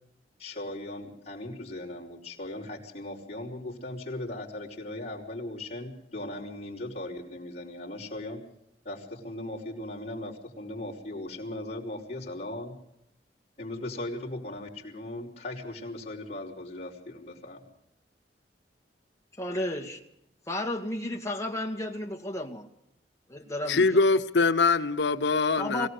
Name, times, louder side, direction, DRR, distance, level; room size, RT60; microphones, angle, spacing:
voice 1, 0.4-8.4 8.8-12.8 13.6-17.6, left 1 dB, 40° left, 4.9 m, -38 dB
voice 2, 19.4-20.0 20.5-22.7 23.3-23.8 25.6-25.9, left 1 dB, 20° left, 2.0 m, -32 dB
voice 3, 23.7-25.9, left 3 dB, 90° left, 0.9 m, -23 dB
23.0 x 17.5 x 6.6 m
head